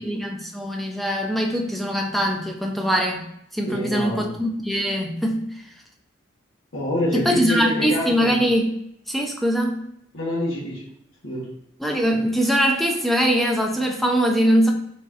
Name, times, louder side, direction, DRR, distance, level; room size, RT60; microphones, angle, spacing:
voice 1, 0.0-5.6 7.1-8.8 9.1-9.8 11.8-14.7, equal, ahead, 1 dB, 0.4 m, -22 dB
voice 2, 3.7-4.3 6.7-8.4 10.1-10.8 11.2-11.5, left 1 dB, 75° left, -6 dB, 1.2 m, -26 dB
4.1 x 3.9 x 2.4 m, 0.76 s
head